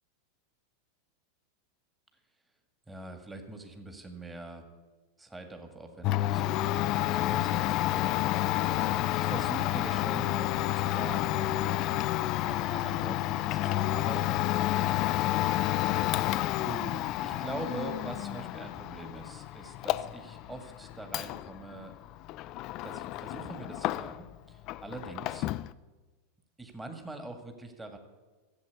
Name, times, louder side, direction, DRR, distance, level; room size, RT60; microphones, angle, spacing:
voice 1, 2.9-4.6 5.2-8.1 9.1-12.0 12.4-14.9 15.2-15.9 16.6-21.9 22.8-25.5 26.6-28.0, right 2 dB, 10° right, 5 dB, 1.9 m, -43 dB
Domestic sounds home sounds, 6.0-24.4 24.6-25.7, left 14 dB, 50° left, 0.4 m, -30 dB
13.5 x 7.7 x 8.3 m, 1.3 s
hypercardioid pair, 100°, 0 cm